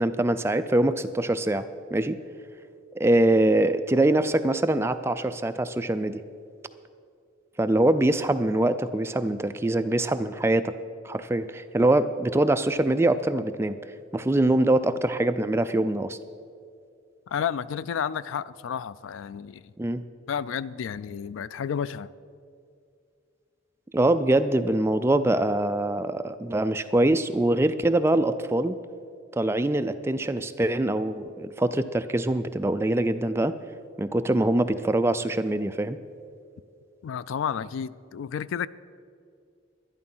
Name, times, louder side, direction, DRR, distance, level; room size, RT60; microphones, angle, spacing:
voice 1, 0.0-2.2 3.0-6.2 7.6-10.7 11.0-13.8 14.1-16.2 19.8-20.0 23.9-28.8 29.3-33.5 34.0-36.0, right 1 dB, 10° right, 0.3 m, -23 dB
voice 2, 17.3-19.7 20.3-22.1 37.0-38.7, left 7 dB, 75° left, 0.3 m, -31 dB
11.5 x 11.0 x 5.5 m
head